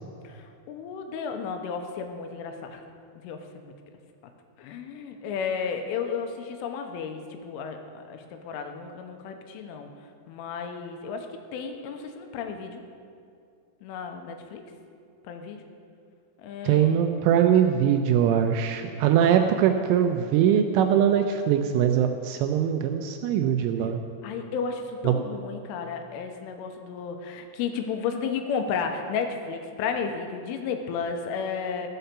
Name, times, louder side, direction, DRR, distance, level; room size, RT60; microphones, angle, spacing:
voice 1, 0.2-2.8 3.2-3.7 4.6-9.9 10.3-12.8 13.8-14.6 15.2-15.6 16.4-17.0 24.2-31.9, left 6 dB, 80° left, 5 dB, 3.2 m, -33 dB
voice 2, 16.6-24.0 25.0-25.2, right 9 dB, 85° right, 5 dB, 2.8 m, -22 dB
15.0 x 5.6 x 6.7 m, 2.4 s
omnidirectional pair, 5.9 m